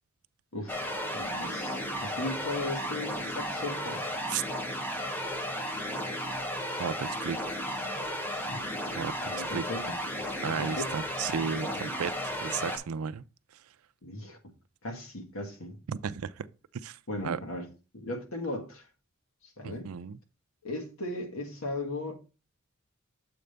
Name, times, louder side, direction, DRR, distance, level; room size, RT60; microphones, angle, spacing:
voice 1, 0.5-4.0 8.3-9.0 9.3-10.0 10.4-11.0 14.0-14.4 14.8-15.8 17.1-17.7 17.9-18.9 19.4-19.9 20.6-22.1, left 2 dB, 70° left, 1.6 m, -37 dB
sound 1, 0.7-12.8, equal, 10° left, 1.1 m, -34 dB
voice 2, 6.8-7.6 8.9-9.6 10.4-12.1 12.4-13.2 15.9-16.5 16.8-17.0 17.2-17.4 19.6-20.2, right 7 dB, 90° right, 0.4 m, -34 dB
7.6 x 3.4 x 5.2 m
head